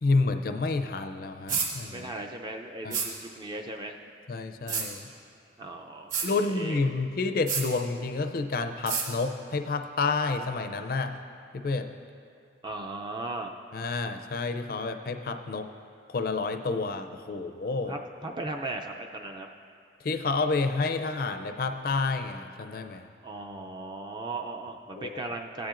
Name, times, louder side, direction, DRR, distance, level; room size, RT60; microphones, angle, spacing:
voice 1, 0.0-2.1 2.8-2.9 4.3-5.0 6.2-11.1 11.5-11.9 13.7-15.7 16.1-18.0 20.0-23.0 25.0-25.1, left 3 dB, 50° left, 7 dB, 0.4 m, -29 dB
sound 1, 1.5-1.7 2.9-3.1 4.7-4.9 6.1-6.3 7.5-7.7 8.9-9.1, right 6 dB, 45° right, 1.5 m, -28 dB
voice 2, 1.9-4.0 5.6-6.1 6.5-6.8 12.6-13.6 17.9-19.5 23.2-25.7, right 2 dB, 25° right, 2 dB, 0.4 m, -37 dB
16.0 x 10.5 x 2.5 m, 2.4 s
head